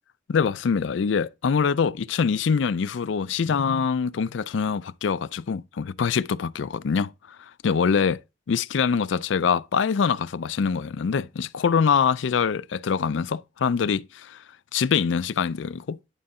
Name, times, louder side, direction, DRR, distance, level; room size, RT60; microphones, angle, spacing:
voice 1, 0.3-7.1 7.6-8.2 8.5-14.4 14.7-16.0, left 6 dB, 70° left, 0.4 m, -24 dB
11.0 x 3.8 x 4.2 m
head